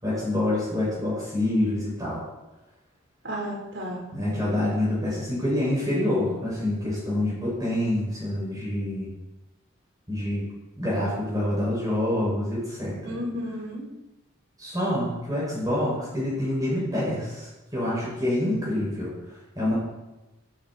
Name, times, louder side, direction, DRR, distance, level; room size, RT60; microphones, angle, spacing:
voice 1, 0.0-2.2 4.1-9.1 10.1-10.4 10.8-13.1 14.6-19.1 19.5-19.7, left 1 dB, 20° right, -7 dB, 6.8 m, -26 dB
voice 2, 3.2-4.1 13.0-13.8, equal, 70° right, -1 dB, 5.0 m, -33 dB
15.0 x 14.0 x 4.6 m, 1.0 s
head